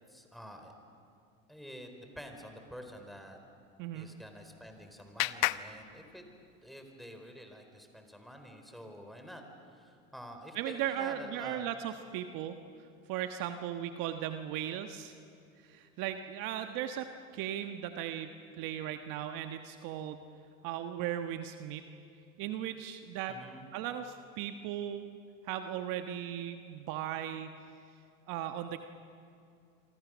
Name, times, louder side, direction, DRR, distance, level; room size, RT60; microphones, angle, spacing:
voice 1, 0.1-0.7 1.5-3.4 3.9-6.2 6.6-9.4 9.7-11.7 23.3-23.6, equal, ahead, 4 dB, 4.1 m, -48 dB
voice 2, 3.8-4.1 10.5-12.6 13.1-15.1 15.6-18.3 18.6-20.2 20.6-21.8 22.4-23.3 23.7-25.2 25.4-27.5 28.3-28.8, right 11 dB, 55° right, 7 dB, 1.4 m, -37 dB
Clapping, 4.1-6.7, left 19 dB, 55° left, 0.8 m, -37 dB
28.0 x 24.5 x 6.3 m, 2.4 s
hypercardioid pair, 95°, 41 cm